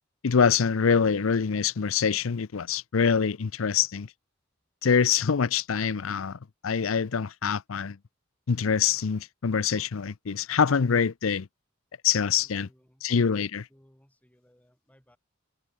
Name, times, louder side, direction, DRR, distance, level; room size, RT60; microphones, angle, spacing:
voice 1, 0.2-4.1 4.8-8.0 8.5-11.5 12.0-12.7 13.0-13.6, left 6 dB, 80° left, 0.6 m, -25 dB
voice 2, 12.3-13.1 13.5-15.2, equal, 5° left, 6.2 m, -62 dB
head